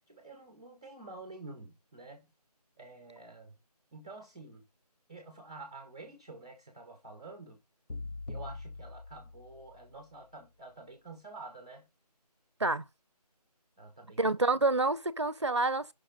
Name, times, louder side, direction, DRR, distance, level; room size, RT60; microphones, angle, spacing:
voice 1, 0.1-2.3 2.8-3.6 3.9-4.6 5.1-7.6 8.3-11.9 13.8-14.2 14.5-14.6, right 3 dB, 10° right, 1.0 m, -49 dB
sound 1, 7.9-10.0, left 3 dB, 90° left, 1.2 m, -43 dB
voice 2, 14.2-15.9, right 2 dB, 45° right, 0.6 m, -28 dB
14.0 x 5.8 x 3.9 m
figure-of-eight pair, 180°, 21 cm